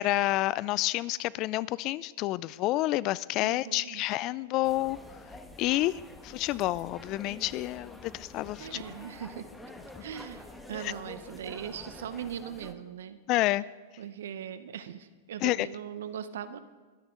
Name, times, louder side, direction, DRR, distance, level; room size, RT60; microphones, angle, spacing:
voice 1, 0.0-5.0 5.6-8.8 10.8-10.9 13.3-13.6 15.4-15.7, left 17 dB, 40° left, 21 dB, 0.4 m, -29 dB
voice 2, 3.4-4.0 8.6-9.5 10.0-13.2 14.0-16.6, right 8 dB, 75° right, 13 dB, 0.9 m, -40 dB
sound 1, 4.6-12.7, left 2 dB, 5° left, 1.2 m, -47 dB
23.0 x 9.6 x 3.8 m, 1.4 s
hypercardioid pair, 115°, 0 cm